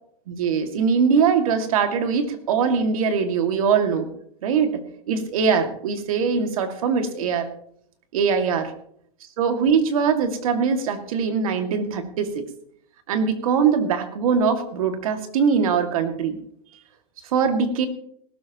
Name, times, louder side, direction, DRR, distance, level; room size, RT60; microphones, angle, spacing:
voice 1, 0.3-4.1 4.4-4.7 5.1-7.5 8.1-8.7 9.4-12.4 13.1-16.4 17.3-17.9, right 6 dB, 60° right, 6 dB, 2.3 m, -22 dB
20.0 x 13.0 x 3.0 m, 0.67 s
hypercardioid pair, 140°, 20 cm